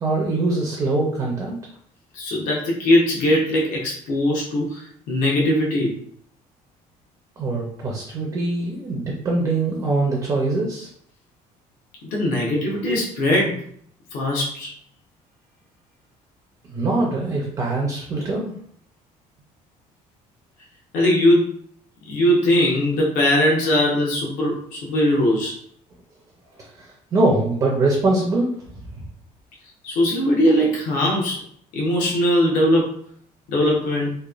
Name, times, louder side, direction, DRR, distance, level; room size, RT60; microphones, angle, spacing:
voice 1, 0.0-1.6 7.4-10.9 16.7-18.5 26.6-28.5 28.9-29.0, right 2 dB, 25° right, -1 dB, 0.4 m, -23 dB
voice 2, 2.1-5.9 12.1-13.6 14.1-14.7 20.9-21.4 22.1-25.6 29.8-31.4 31.7-32.9 33.5-34.1, left 1 dB, 65° left, -2 dB, 0.8 m, -20 dB
2.9 x 2.1 x 2.3 m, 0.62 s
cardioid pair, 180°, 15 cm